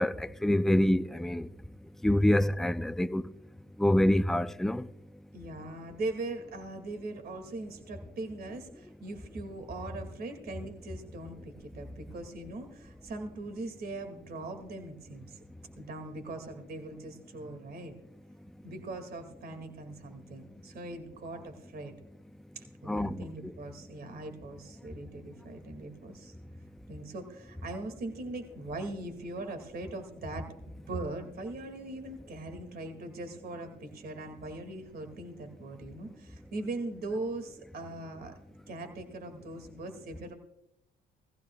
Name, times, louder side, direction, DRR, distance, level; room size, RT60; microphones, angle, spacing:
voice 1, 0.0-1.5 2.0-3.2 3.8-4.9 22.9-23.5, left 1 dB, ahead, 0.4 m, -26 dB
voice 2, 5.3-15.4 15.8-17.9 18.6-21.9 22.6-26.3 26.9-38.3 38.7-40.3, right 2 dB, 55° right, 2.3 m, -40 dB
19.0 x 15.5 x 2.3 m
cardioid pair, 100°, 19 cm